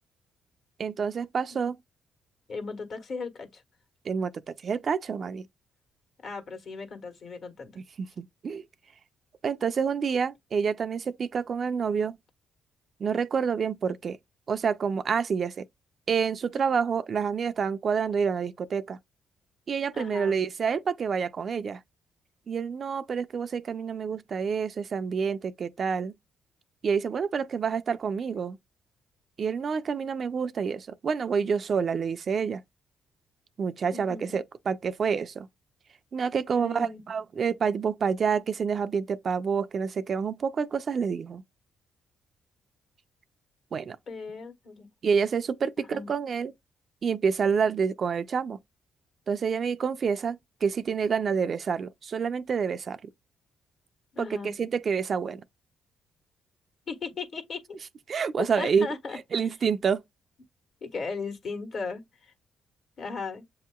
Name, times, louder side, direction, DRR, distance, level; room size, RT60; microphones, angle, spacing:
voice 1, 0.8-1.8 4.1-4.3 4.6-5.4 7.8-8.6 9.4-12.2 13.0-14.2 14.5-15.6 16.1-19.0 19.7-21.8 22.5-26.1 26.8-28.6 29.4-32.6 33.6-35.5 36.1-41.4 43.7-44.0 45.0-46.5 47.0-48.6 49.3-53.1 54.2-55.4 58.1-58.9 59.3-60.0, right 6 dB, 50° right, 0.4 m, -28 dB
voice 2, 2.5-3.6 6.2-7.8 19.9-20.4 33.9-34.4 36.6-37.0 44.1-44.9 45.8-46.1 54.1-54.5 56.9-57.8 58.4-59.5 60.8-62.3 63.0-63.4, left 4 dB, 60° left, 1.3 m, -37 dB
7.5 x 2.8 x 2.3 m
cardioid pair, 90°, 0 cm